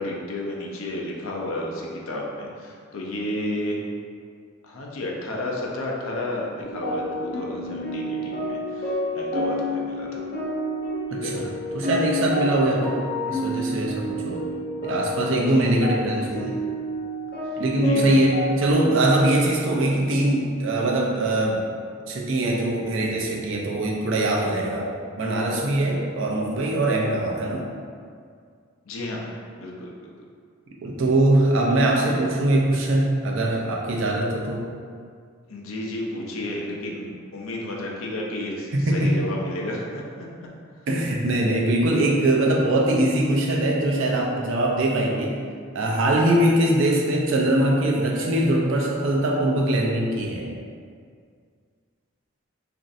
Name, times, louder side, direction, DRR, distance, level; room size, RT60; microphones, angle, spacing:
voice 1, 0.0-3.8 4.6-10.2 11.1-11.5 14.1-14.3 15.5-15.8 16.3-16.6 17.7-18.2 28.9-29.2 29.6-30.1 35.5-40.3, left 1 dB, 75° left, -2 dB, 0.5 m, -32 dB
sound 1, 6.6-18.7, left 1 dB, 45° left, 0.8 m, -29 dB
voice 2, 11.1-11.5 11.7-13.0 13.3-14.4 14.8-16.4 17.6-21.6 22.1-24.9 25.2-27.6 30.8-34.6 38.7-39.1 40.9-45.4 45.7-50.5, right 1 dB, 65° right, -2 dB, 0.5 m, -22 dB
3.0 x 2.5 x 2.6 m, 2.2 s
head